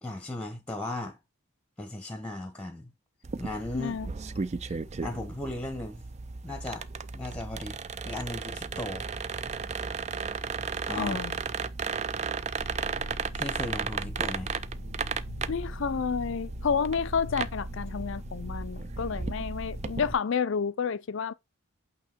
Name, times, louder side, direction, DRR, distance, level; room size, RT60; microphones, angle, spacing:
voice 1, 0.0-1.2 1.8-2.9 3.4-4.0 5.0-6.0 6.4-6.8 7.1-7.8 8.0-9.1 10.9-11.2 13.3-14.6, left 1 dB, 5° left, 0.9 m, -36 dB
sound 1, 3.2-20.1, right 5 dB, 30° right, 0.4 m, -35 dB
voice 2, 3.7-4.1 10.9-11.4 15.5-21.3, left 6 dB, 60° left, 0.4 m, -30 dB
sound 2, 12.6-20.1, equal, 85° right, 1.9 m, -41 dB
8.5 x 2.9 x 4.4 m
head